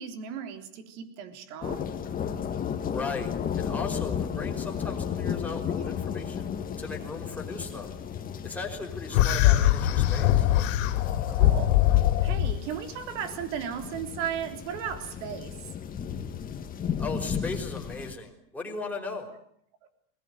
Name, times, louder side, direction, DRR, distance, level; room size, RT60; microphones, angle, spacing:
voice 1, 0.0-1.9 11.3-11.8 12.2-15.5 19.8-19.9, right 8 dB, 65° right, 7 dB, 3.7 m, -35 dB
sound 1, 1.6-18.1, left 8 dB, 20° left, 1.8 m, -34 dB
voice 2, 2.9-6.5 6.8-7.9 8.4-10.5 17.0-19.3, left 3 dB, 5° left, -1 dB, 5.2 m, -37 dB
sound 2, 9.1-12.6, left 13 dB, 70° left, 2.9 m, -22 dB
22.0 x 20.0 x 9.2 m, 0.69 s
supercardioid pair, 145°, 39 cm